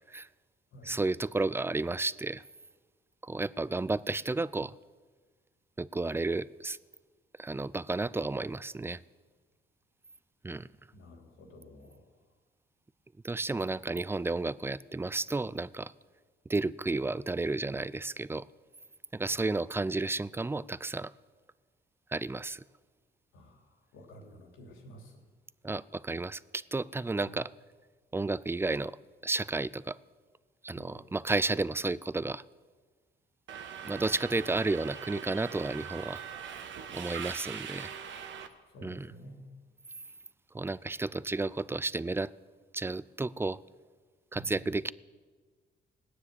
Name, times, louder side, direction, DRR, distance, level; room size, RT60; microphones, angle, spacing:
voice 1, 0.8-2.4 3.2-4.7 5.8-6.8 7.4-9.0 10.4-10.7 13.2-15.9 16.5-18.5 19.1-21.1 22.1-22.6 25.6-27.5 28.1-29.0 29.2-30.0 30.6-32.4 33.8-36.2 36.9-37.9 38.8-39.1 40.5-42.3 42.7-43.6 44.3-44.9, right 3 dB, 10° right, 19 dB, 0.4 m, -32 dB
voice 2, 10.9-12.0 19.3-19.5 23.3-23.6 23.9-25.1 27.2-27.4 30.7-31.0 38.7-39.4 44.3-44.7, equal, 85° left, 2 dB, 3.1 m, -51 dB
Subway metro underground, 33.5-38.5, right 8 dB, 70° right, 1.3 m, -42 dB
17.5 x 9.8 x 8.1 m, 1.4 s
cardioid pair, 90°, 20 cm